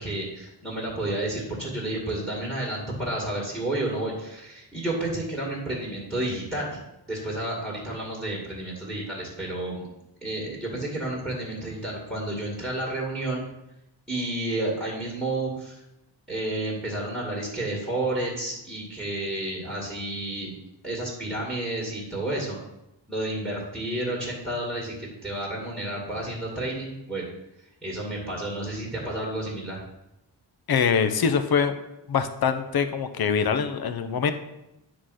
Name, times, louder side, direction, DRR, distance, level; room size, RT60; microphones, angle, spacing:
voice 1, 0.0-6.8 7.1-9.9 10.2-13.4 14.1-15.8 16.3-20.5 20.8-22.6 23.1-27.3 27.8-29.8, right 1 dB, ahead, -6 dB, 2.2 m, -31 dB
voice 2, 30.7-31.8 32.1-34.3, left 6 dB, 55° left, 9 dB, 0.8 m, -24 dB
9.8 x 4.0 x 6.4 m, 0.90 s
wide cardioid pair, 140°, 44 cm